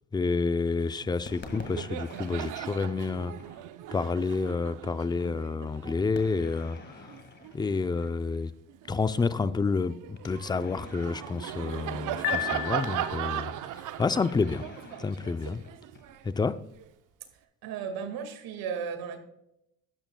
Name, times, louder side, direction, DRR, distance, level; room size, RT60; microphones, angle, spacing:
voice 1, 0.1-3.3 3.9-7.1 7.5-8.5 8.9-14.6 15.0-15.6 16.2-16.6, left 4 dB, 10° left, 0.4 m, -29 dB
Laughter, 1.0-1.2 1.5-8.2 8.7-16.9, right 12 dB, 55° right, 0.7 m, -38 dB
sound 1, 1.2-3.9 6.1-8.5 10.2-12.6 14.0-16.4, left 3 dB, 30° left, 1.8 m, -49 dB
Piano, 12.2-13.5, left 16 dB, 65° left, 0.8 m, -33 dB
voice 2, 17.6-19.2, right 6 dB, 70° right, 1.9 m, -35 dB
12.5 x 10.0 x 2.2 m
cardioid pair, 105°, 37 cm